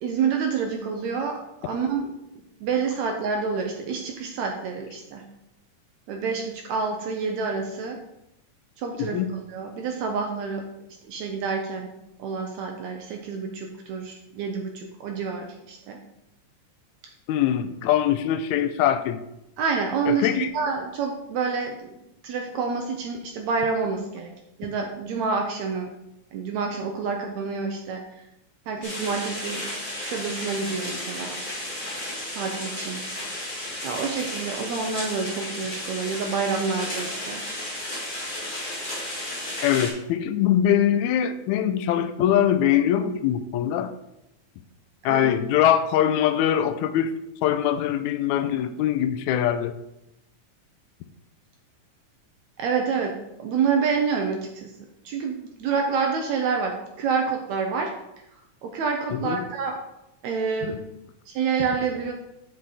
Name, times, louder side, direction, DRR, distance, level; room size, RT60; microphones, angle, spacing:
voice 1, 0.0-2.1 2.6-5.2 6.1-8.0 8.8-9.2 9.5-10.7 11.1-11.9 12.2-16.0 19.6-21.9 22.2-24.3 24.6-25.9 26.3-28.0 28.7-29.7 30.0-31.4 32.3-33.0 33.8-37.4 45.1-45.3 52.6-54.7 55.1-57.9 58.6-59.8 60.2-60.9 61.3-62.1, right 5 dB, 75° right, 3 dB, 1.9 m, -28 dB
voice 2, 17.3-19.2 20.1-20.5 39.6-43.9 45.0-47.1 47.4-49.7 59.1-59.4 60.6-60.7, left 10 dB, 80° left, 11 dB, 1.8 m, -22 dB
sound 1, 28.8-39.9, left 1 dB, 20° left, 1.4 m, -33 dB
7.7 x 6.3 x 4.2 m, 0.87 s
omnidirectional pair, 3.5 m